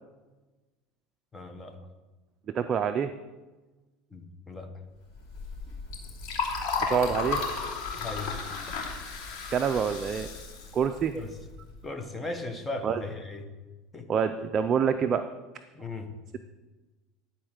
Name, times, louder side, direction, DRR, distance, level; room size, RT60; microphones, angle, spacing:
voice 1, 1.3-1.8 4.1-4.7 7.9-8.4 11.1-11.3 11.8-13.5 13.9-14.1 15.7-16.2, left 2 dB, 15° left, 5 dB, 1.2 m, -37 dB
voice 2, 2.5-3.1 6.9-7.4 9.5-10.3 10.7-11.1 12.8-13.0 14.1-15.2, right 7 dB, 35° right, 8 dB, 0.5 m, -26 dB
Liquid, 5.1-11.8, left 4 dB, 65° left, 3.2 m, -34 dB
12.5 x 4.4 x 6.5 m, 1.2 s
supercardioid pair, 115°, 0 cm